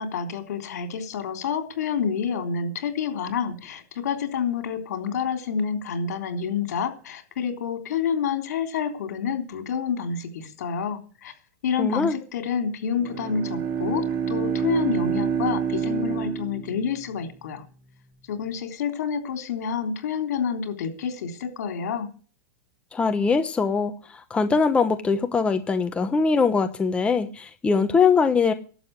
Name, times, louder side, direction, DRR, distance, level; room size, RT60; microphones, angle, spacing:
voice 1, 0.0-11.3 11.6-17.6 18.3-22.1, left 7 dB, 75° left, 6 dB, 3.6 m, -28 dB
voice 2, 11.8-12.1 22.9-23.9 24.3-28.5, left 5 dB, 15° left, 8 dB, 0.9 m, -22 dB
Bowed string instrument, 12.9-17.3, right 7 dB, 35° right, 2.7 m, -27 dB
12.0 x 7.9 x 9.5 m, 0.39 s
supercardioid pair, 140°, 9 cm